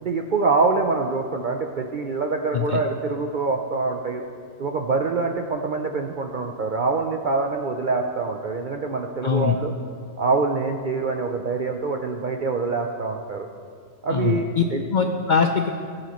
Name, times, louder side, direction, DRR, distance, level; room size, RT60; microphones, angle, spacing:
voice 1, 0.0-4.2 4.6-9.7 10.2-13.5 14.0-14.8, right 4 dB, 60° right, 3 dB, 0.5 m, -25 dB
voice 2, 9.2-9.6 14.1-14.6 14.9-15.7, left 6 dB, 60° left, 4 dB, 0.5 m, -22 dB
18.5 x 7.7 x 3.0 m, 2.3 s
omnidirectional pair, 1.4 m